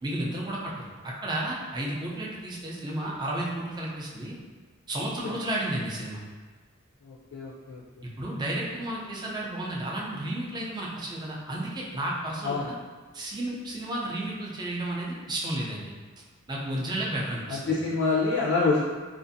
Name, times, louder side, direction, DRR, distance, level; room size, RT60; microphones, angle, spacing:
voice 1, 0.0-4.4 4.9-6.2 8.0-12.7 13.1-15.9 16.5-17.8, right 1 dB, 20° right, -4 dB, 0.4 m, -32 dB
voice 2, 7.0-7.8 12.4-12.7 17.5-18.8, left 4 dB, 65° left, -6 dB, 0.5 m, -26 dB
2.5 x 2.4 x 2.6 m, 1.4 s
head